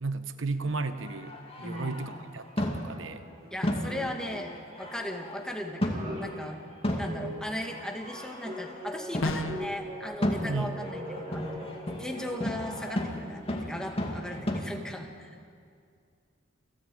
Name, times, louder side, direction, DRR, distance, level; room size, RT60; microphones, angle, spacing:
voice 1, 0.0-3.2 10.4-10.8, right 3 dB, 70° right, 10 dB, 1.0 m, -34 dB
sound 1, 0.7-2.2 2.6-3.1 3.6-5.5 5.8-6.2 6.8-8.8 9.1-9.5 10.2-14.6, left 1 dB, 30° left, 2.5 m, -34 dB
voice 2, 1.6-2.0 3.5-6.6 7.0-11.6 12.0-15.3, left 1 dB, 5° left, 2 dB, 2.1 m, -37 dB
sound 2, 1.7-3.5 3.8-13.3, equal, 35° right, 7.5 m, -42 dB
sound 3, 9.2-9.8, left 2 dB, 85° left, 1.4 m, -31 dB
28.0 x 14.5 x 8.8 m, 2.3 s
head